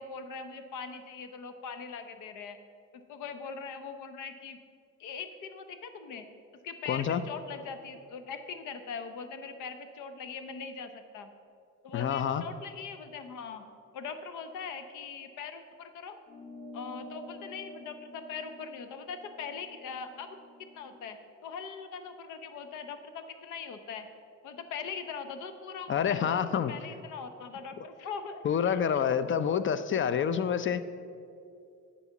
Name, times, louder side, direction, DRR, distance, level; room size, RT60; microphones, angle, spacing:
voice 1, 0.0-2.6 2.9-4.6 5.0-6.3 6.6-11.3 11.8-13.7 13.9-16.2 16.7-20.4 20.7-24.1 24.4-29.0, left 5 dB, 85° left, 9 dB, 0.8 m, -41 dB
voice 2, 6.9-7.2 11.9-12.4 25.9-26.7 28.4-30.8, left 8 dB, 40° left, 13 dB, 0.5 m, -27 dB
sound 1, 16.3-21.1, left 1 dB, 10° left, 1.1 m, -49 dB
9.9 x 4.2 x 7.0 m, 2.4 s
cardioid pair, 90°, 30 cm